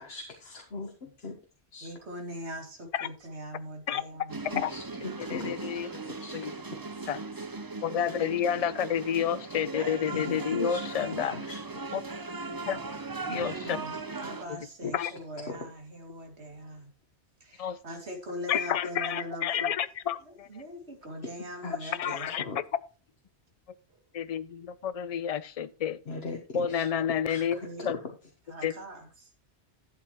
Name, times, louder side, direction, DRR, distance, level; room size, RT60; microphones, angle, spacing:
voice 1, 0.0-1.4 1.7-1.9 4.5-5.7 6.0-6.4 6.9-7.1 10.1-11.8 12.5-12.6 14.8-15.1 15.5-15.7 21.6-22.6 26.1-28.0, left 3 dB, 65° left, 1.6 m, -39 dB
voice 2, 1.8-4.4 13.3-16.9 17.4-19.7 20.3-22.5 27.6-27.9 28.5-29.3, equal, 80° right, 2.8 m, -41 dB
sound 1, 4.3-14.4, right 3 dB, 25° right, 0.6 m, -38 dB
voice 3, 5.3-5.9 6.3-6.5 7.1-7.2 7.8-11.3 11.9-12.0 12.7-12.8 13.3-13.8 14.5-14.6 14.9-15.1 17.6-17.8 18.5-20.5 22.0-22.4 24.1-26.0 26.5-28.0 28.6-28.7, left 8 dB, 45° left, 0.6 m, -30 dB
12.0 x 8.3 x 3.0 m
omnidirectional pair, 1.1 m